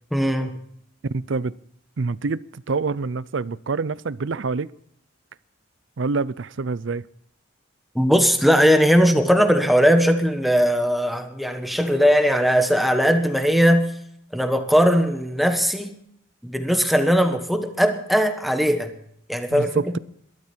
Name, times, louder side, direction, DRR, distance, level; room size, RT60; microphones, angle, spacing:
voice 1, 0.1-0.6 7.9-13.9 14.3-16.0 16.4-18.9 19.3-19.8, equal, ahead, 1.4 m, -19 dB
voice 2, 1.1-1.5 2.0-4.7 6.0-7.0 19.5-20.0, right 4 dB, 65° right, 0.5 m, -26 dB
20.5 x 13.0 x 4.5 m
head